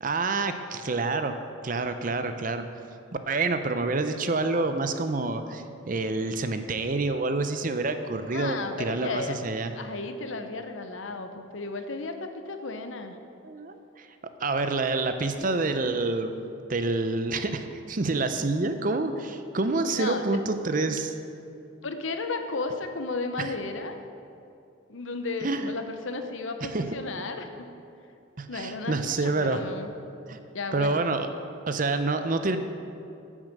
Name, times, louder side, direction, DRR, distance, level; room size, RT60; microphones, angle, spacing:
voice 1, 0.0-1.3 1.6-2.6 3.3-9.7 13.4-14.1 14.4-16.3 16.7-21.1 23.4-23.5 25.4-25.7 26.6-26.8 28.4-29.6 30.3-30.4 30.7-31.3 31.7-32.6, right 3 dB, 40° right, 9 dB, 0.6 m, -27 dB
voice 2, 8.3-9.4 9.7-13.2 20.0-20.4 21.8-24.0 24.9-27.7 28.5-29.9 30.5-31.0, left 3 dB, 70° left, 7 dB, 0.8 m, -34 dB
9.8 x 7.4 x 6.6 m, 2.6 s
head